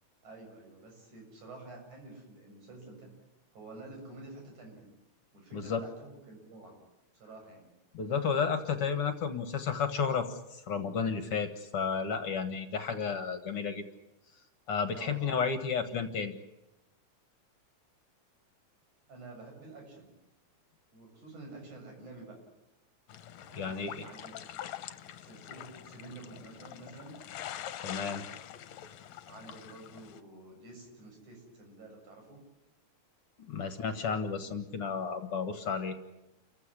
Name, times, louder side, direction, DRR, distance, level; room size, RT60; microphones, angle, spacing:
voice 1, 0.2-3.1 3.5-4.9 5.3-6.8 7.1-7.7 14.9-15.2 19.1-20.1 20.9-22.4 23.5-24.8 25.2-27.4 29.3-32.4 33.6-33.7, right 2 dB, 75° right, 2 dB, 8.8 m, -49 dB
voice 2, 5.5-5.8 7.9-13.9 14.7-16.4 23.5-24.1 27.8-28.2 33.4-36.0, left 6 dB, 55° left, 8 dB, 2.2 m, -32 dB
sound 1, 23.1-30.2, left 11 dB, 70° left, 2.2 m, -44 dB
29.0 x 15.5 x 9.9 m, 0.91 s
omnidirectional pair, 3.4 m